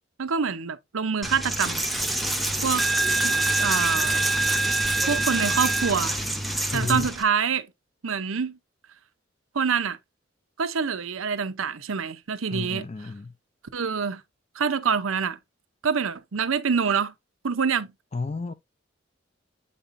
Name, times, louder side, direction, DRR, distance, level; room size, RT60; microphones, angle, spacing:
voice 1, 0.2-1.8 2.1-2.3 2.6-2.9 3.2-4.2 5.1-6.2 6.7-7.7 8.0-8.6 9.5-10.0 10.6-12.9 13.7-14.2 14.5-15.4 15.8-17.1 17.4-17.9, right 6 dB, 85° right, 0.7 m, -26 dB
Coin (dropping), 1.2-7.2, right 2 dB, ahead, 0.7 m, -25 dB
voice 2, 6.7-7.1 12.5-13.3 18.1-18.5, left 3 dB, 30° left, 0.4 m, -31 dB
8.2 x 5.4 x 2.6 m
head